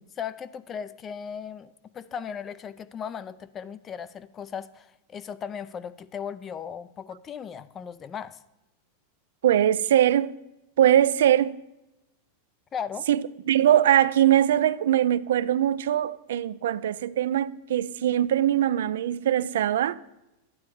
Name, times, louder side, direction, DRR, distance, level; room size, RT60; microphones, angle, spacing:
voice 1, 0.2-8.4 12.7-13.1, left 7 dB, 25° left, 0.4 m, -37 dB
voice 2, 9.4-10.3 10.8-11.6 13.1-20.0, right 11 dB, 85° right, 0.4 m, -22 dB
11.5 x 9.6 x 4.8 m
supercardioid pair, 145°, 0 cm